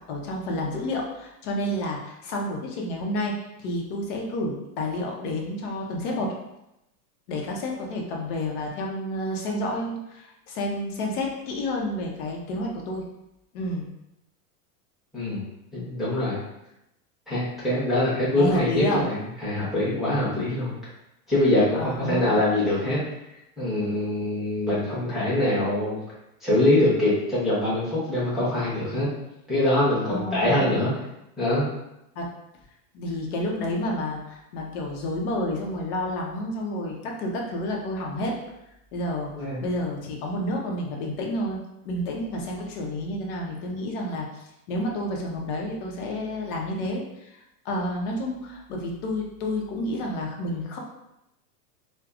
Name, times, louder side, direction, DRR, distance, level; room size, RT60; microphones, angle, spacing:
voice 1, 0.1-6.3 7.3-13.1 13.5-13.9 18.3-19.0 21.7-22.4 30.1-30.9 32.2-32.3 32.9-38.3 38.9-41.6 41.8-44.3 44.7-47.4 47.6-50.8, left 1 dB, 50° left, 0 dB, 0.8 m, -30 dB
voice 2, 15.1-15.4 15.7-16.4 17.3-20.7 21.3-23.0 23.6-26.0 26.4-29.1 29.5-30.9 31.4-31.6 39.4-39.6, left 1 dB, ahead, -10 dB, 1.0 m, -23 dB
3.3 x 2.1 x 2.4 m, 0.88 s
hypercardioid pair, 125°, 47 cm